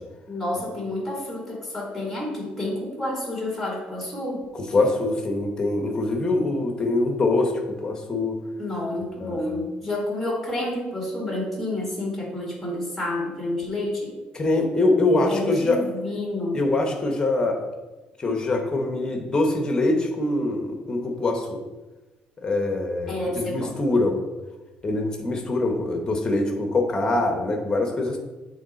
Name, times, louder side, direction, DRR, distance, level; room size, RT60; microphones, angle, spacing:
voice 1, 0.3-4.5 8.6-14.2 15.3-16.6 23.1-23.8, left 1 dB, 5° left, -1 dB, 1.6 m, -29 dB
voice 2, 4.7-8.4 9.2-9.4 14.3-15.8 16.5-17.6 18.2-21.6 22.4-24.2 24.8-28.2, left 2 dB, 20° left, 3 dB, 1.0 m, -23 dB
8.1 x 3.2 x 4.0 m, 1.1 s
cardioid pair, 145°, 3 cm